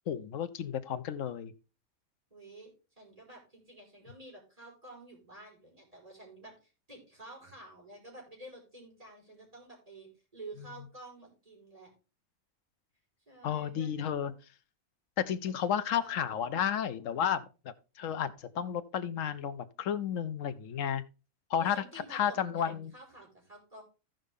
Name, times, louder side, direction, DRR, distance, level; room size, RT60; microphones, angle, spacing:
voice 1, 0.1-1.5 13.4-14.4 15.2-21.0 21.5-21.8 22.1-22.9, left 8 dB, 70° left, 1.1 m, -32 dB
voice 2, 2.3-2.7 3.0-11.9 13.3-13.9 16.0-16.3 21.6-23.8, right 2 dB, 25° right, 4.9 m, -50 dB
15.0 x 5.3 x 3.6 m
omnidirectional pair, 1.5 m